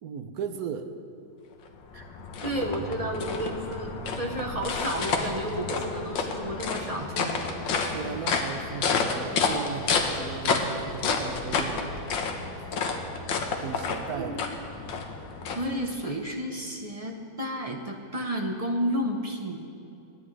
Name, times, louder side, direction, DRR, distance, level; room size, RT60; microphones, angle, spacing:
voice 1, 0.0-0.9 7.9-12.0 13.6-14.4, right 6 dB, 65° right, 8 dB, 1.1 m, -36 dB
sound 1, 1.7-16.1, left 4 dB, 75° left, 1.8 m, -30 dB
voice 2, 2.4-7.4 14.1-14.4 15.5-19.6, right 1 dB, 35° right, 1 dB, 0.6 m, -32 dB
26.0 x 9.9 x 3.3 m, 2.8 s
omnidirectional pair, 2.1 m